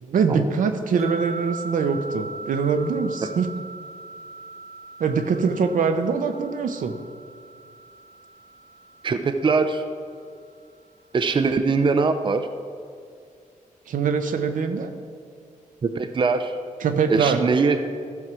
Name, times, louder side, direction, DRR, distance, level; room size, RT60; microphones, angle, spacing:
voice 1, 0.0-3.5 5.0-7.0 13.9-14.9 16.8-17.4, right 5 dB, 75° right, 6 dB, 0.8 m, -23 dB
sound 1, 1.0-10.3, right 3 dB, 55° right, 0.9 m, -40 dB
voice 2, 9.0-9.8 11.1-12.5 15.8-16.6 17.1-17.9, right 4 dB, 35° right, 8 dB, 0.5 m, -22 dB
14.0 x 4.7 x 6.1 m, 2.2 s
cardioid pair, 95°, 14 cm